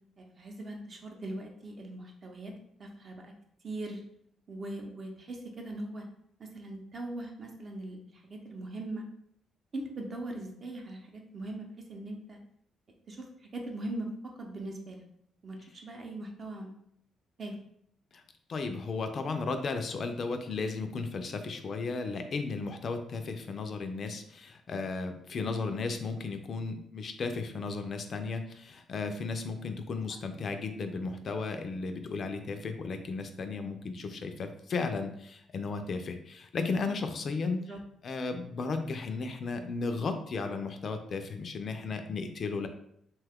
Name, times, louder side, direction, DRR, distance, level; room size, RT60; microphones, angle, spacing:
voice 1, 0.2-2.5 2.8-3.3 3.6-4.0 4.5-6.1 6.4-8.0 8.2-9.1 9.7-12.4 13.1-15.0 15.4-16.7 17.4-17.5 37.7-37.8, right 1 dB, 45° right, 2 dB, 0.6 m, -40 dB
voice 2, 18.5-37.7 38.0-42.7, left 4 dB, 50° left, 7 dB, 0.4 m, -35 dB
2.8 x 2.3 x 3.4 m, 0.72 s
cardioid pair, 90°, 0 cm